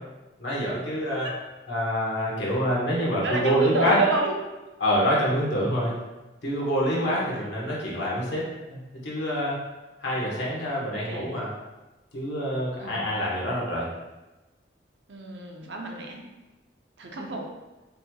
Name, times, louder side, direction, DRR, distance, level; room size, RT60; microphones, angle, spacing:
voice 1, 0.4-1.3 1.7-4.0 4.8-6.0 6.4-9.6 10.0-11.5 12.1-13.9, equal, 85° left, -5 dB, 1.3 m, -26 dB
voice 2, 3.2-4.3 10.0-10.6 11.0-11.4 12.8-13.0 15.1-16.2 17.0-17.4, right 2 dB, 80° right, 0 dB, 0.7 m, -30 dB
5.2 x 3.0 x 2.3 m, 1.1 s
head